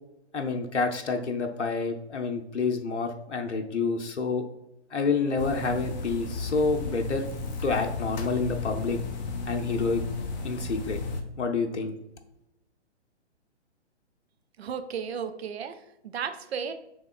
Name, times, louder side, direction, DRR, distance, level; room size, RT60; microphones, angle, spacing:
voice 1, 0.3-4.4 4.9-7.3 7.6-9.0 9.5-10.0 10.4-11.0 11.4-12.0, left 4 dB, 90° left, 4 dB, 0.7 m, -28 dB
sound 1, 5.4-11.2, left 3 dB, 40° left, 0.8 m, -34 dB
voice 2, 14.6-16.7, right 7 dB, 65° right, 9 dB, 0.6 m, -34 dB
6.9 x 3.1 x 2.4 m, 0.88 s
hypercardioid pair, 135°, 35 cm